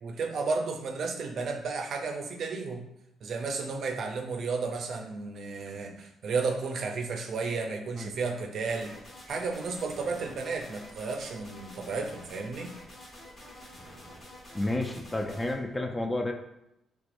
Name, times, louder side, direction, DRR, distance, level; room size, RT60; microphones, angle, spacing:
voice 1, 0.0-2.9 3.2-8.9 9.3-12.7, right 4 dB, 60° right, 3 dB, 0.5 m, -33 dB
sound 1, 8.6-15.5, left 1 dB, 40° left, 1.3 m, -48 dB
voice 2, 14.5-16.3, left 2 dB, 20° left, 4 dB, 0.4 m, -31 dB
3.4 x 3.2 x 2.5 m, 0.84 s
cardioid pair, 90°, 0 cm